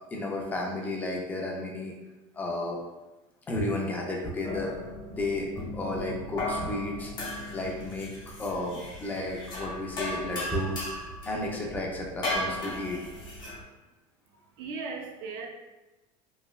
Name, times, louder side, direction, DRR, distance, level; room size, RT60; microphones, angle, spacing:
voice 1, 0.1-1.9 2.3-2.8 3.5-4.8 5.1-5.5 5.7-7.1 7.5-8.1 8.4-13.0, left 2 dB, 10° left, 0 dB, 0.3 m, -32 dB
sound 1, 4.4-13.6, left 1 dB, 30° left, 1.0 m, -36 dB
voice 2, 14.3-15.5, right 4 dB, 60° right, 1 dB, 0.5 m, -38 dB
3.1 x 2.1 x 2.2 m, 1.1 s
cardioid pair, 160°, 14 cm